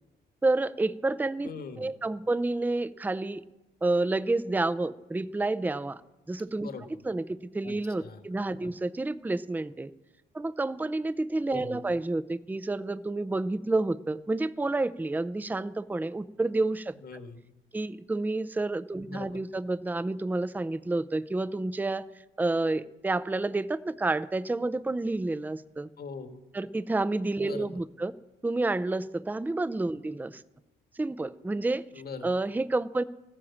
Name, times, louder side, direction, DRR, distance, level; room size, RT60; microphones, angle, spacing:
voice 1, 0.4-1.5 1.8-3.4 3.8-6.0 6.3-6.7 7.0-9.9 10.3-17.0 17.7-22.1 22.4-25.9 26.5-28.1 28.4-30.4 30.9-31.8 32.2-33.0, right 2 dB, 10° right, 14 dB, 0.6 m, -29 dB
voice 2, 1.4-1.9 6.6-6.9 7.6-8.2 11.5-11.8 17.0-17.4 19.0-19.5 26.0-26.4 27.4-27.7 31.9-32.3, left 4 dB, 50° left, 7 dB, 1.9 m, -41 dB
15.0 x 10.0 x 7.3 m, 0.95 s
cardioid pair, 90°, 20 cm